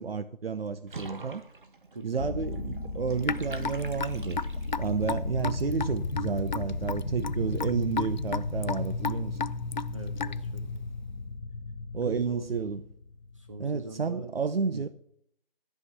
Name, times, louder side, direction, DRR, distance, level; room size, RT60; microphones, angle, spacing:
voice 1, 0.0-1.4 2.0-4.4 4.8-9.4 11.9-12.8 13.6-14.9, right 6 dB, 80° right, 0.8 m, -31 dB
Water / Bathtub (filling or washing), 0.9-4.9, right 3 dB, 60° right, 1.7 m, -46 dB
voice 2, 1.9-2.7 9.9-10.6 12.0-12.7 13.3-14.4 14.7-14.9, right 3 dB, 35° right, 0.9 m, -42 dB
sound 1, 2.2-13.6, left 2 dB, 80° left, 1.7 m, -34 dB
Raindrop / Drip, 3.2-10.6, left 5 dB, 50° left, 0.4 m, -34 dB
13.0 x 5.8 x 8.0 m
figure-of-eight pair, 170°, 29 cm